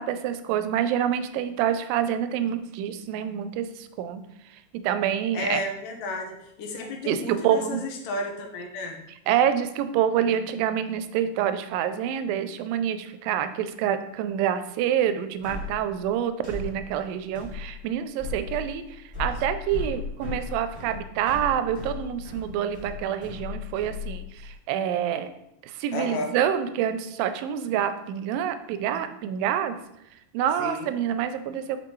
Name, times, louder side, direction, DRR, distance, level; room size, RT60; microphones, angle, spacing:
voice 1, 0.0-4.2 4.8-5.6 7.1-7.8 9.3-25.3 25.6-29.8 30.3-31.8, right 9 dB, 90° right, 10 dB, 2.3 m, -27 dB
voice 2, 5.3-9.0 25.9-26.3 30.6-30.9, left 2 dB, 80° left, 2 dB, 2.5 m, -32 dB
sound 1, 15.4-24.6, left 4 dB, 10° left, 1.7 m, -36 dB
6.8 x 5.3 x 3.1 m, 0.82 s
omnidirectional pair, 4.0 m